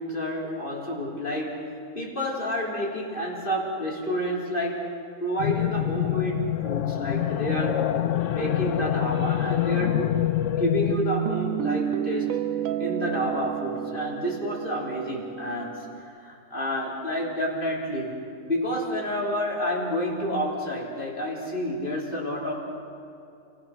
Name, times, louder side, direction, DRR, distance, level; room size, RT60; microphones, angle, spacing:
voice 1, 0.0-4.9 5.2-7.8 8.3-10.2 10.6-12.3 12.8-15.9 16.2-18.2 18.5-22.6, equal, 40° left, -3 dB, 3.9 m, -29 dB
sound 1, 5.4-10.9, left 12 dB, 70° left, 1.0 m, -26 dB
Guitar, 10.9-16.0, right 10 dB, 80° right, 1.1 m, -30 dB
29.5 x 17.0 x 6.1 m, 2.7 s
omnidirectional pair, 1.4 m